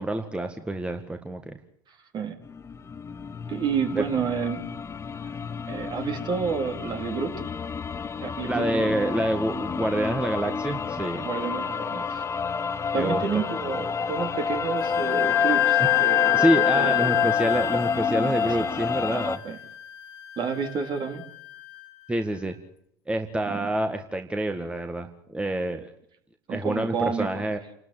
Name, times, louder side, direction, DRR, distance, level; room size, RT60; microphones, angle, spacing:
voice 1, 0.0-1.6 4.0-4.1 8.5-11.2 13.0-13.2 15.8-15.9 16.3-19.4 22.1-22.6 23.1-25.9 26.5-27.6, right 1 dB, 10° right, 6 dB, 1.9 m, -27 dB
voice 2, 1.9-2.4 3.5-4.7 5.2-5.3 5.7-7.3 8.2-9.0 11.2-12.2 12.9-17.2 18.2-18.7 19.4-19.6 20.4-21.2 23.5-23.7 26.5-27.4, right 6 dB, 45° right, 5 dB, 3.8 m, -30 dB
sound 1, 2.4-19.4, left 6 dB, 25° left, 1.2 m, -29 dB
Wind instrument woodwind instrument, 14.8-22.2, left 19 dB, 65° left, 2.2 m, -27 dB
28.0 x 13.0 x 9.2 m, 0.73 s
hypercardioid pair, 90°, 11 cm